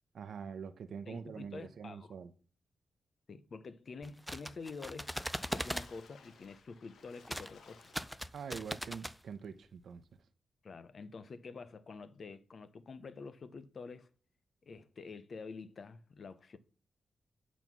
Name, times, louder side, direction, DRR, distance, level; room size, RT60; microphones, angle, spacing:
voice 1, 0.1-2.3 8.3-10.0, right 6 dB, 70° right, 0.7 m, -44 dB
voice 2, 1.1-2.1 3.3-5.2 5.5-8.0 10.6-14.1 14.6-16.6, left 4 dB, 45° left, 0.6 m, -48 dB
sound 1, 4.0-5.9 7.3-7.5 7.8-9.2, equal, ahead, 0.4 m, -39 dB
Water / Splash splatter, 4.7-8.6 9.1-9.2 9.6-9.7, left 5 dB, 80° left, 1.2 m, -60 dB
9.0 x 4.1 x 6.0 m
wide cardioid pair, 160°, 0 cm